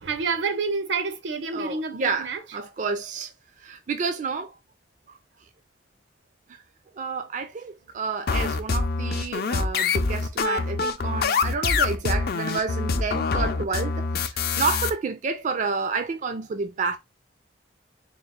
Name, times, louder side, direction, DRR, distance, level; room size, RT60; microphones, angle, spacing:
voice 1, 0.0-2.4, right 4 dB, 80° right, 0.6 m, -28 dB
voice 2, 1.5-3.3 3.6-4.5 5.1-5.2 6.5-6.6 7.0-17.0, right 4 dB, 40° right, 0.4 m, -30 dB
sound 1, 8.3-14.9, left 4 dB, 55° left, 0.5 m, -25 dB
3.8 x 2.3 x 3.4 m
head